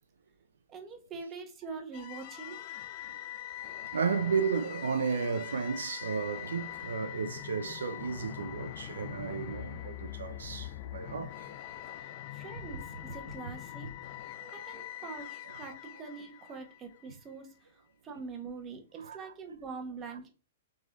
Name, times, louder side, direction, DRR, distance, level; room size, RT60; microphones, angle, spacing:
voice 1, 0.7-2.6 11.9-13.9 14.5-17.5 18.0-20.3, right 4 dB, 25° right, 1.0 m, -44 dB
sound 1, 1.9-17.1, left 12 dB, 45° left, 0.5 m, -43 dB
voice 2, 3.9-11.3 12.6-12.7 14.4-14.5 15.5-15.6 19.0-19.3 20.1-20.2, right 5 dB, 90° right, 0.5 m, -33 dB
3.7 x 3.2 x 3.8 m
hypercardioid pair, 135°, 0 cm